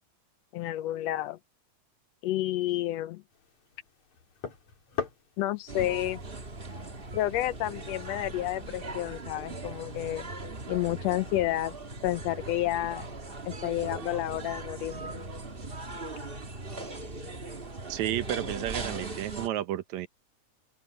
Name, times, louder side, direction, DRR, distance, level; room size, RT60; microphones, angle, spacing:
voice 1, 0.5-1.4 2.2-3.2 5.4-6.2 7.1-10.3 10.7-11.7 12.0-13.0 13.4-15.1, left 14 dB, 80° left, 1.5 m, -30 dB
sound 1, 3.3-8.4, left 6 dB, 65° left, 5.1 m, -43 dB
sound 2, 5.7-19.5, right 2 dB, 25° right, 1.3 m, -39 dB
voice 2, 17.9-20.1, right 13 dB, 70° right, 2.1 m, -32 dB
open air
omnidirectional pair, 3.5 m